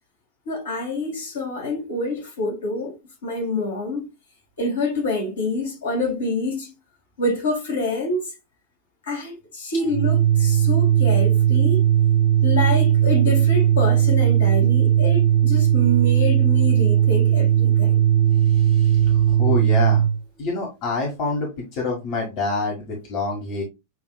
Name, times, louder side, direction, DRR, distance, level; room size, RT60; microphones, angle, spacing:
voice 1, 0.5-2.9 3.2-4.1 4.6-6.7 7.2-8.3 9.1-11.9 12.4-17.9, left 2 dB, 65° left, 2.1 m, -26 dB
Organ, 9.9-20.2, right 10 dB, 40° right, 0.7 m, -18 dB
voice 2, 18.5-20.1 20.4-23.6, left 3 dB, 45° left, 1.6 m, -27 dB
7.5 x 3.0 x 2.3 m
figure-of-eight pair, 90°, 0 cm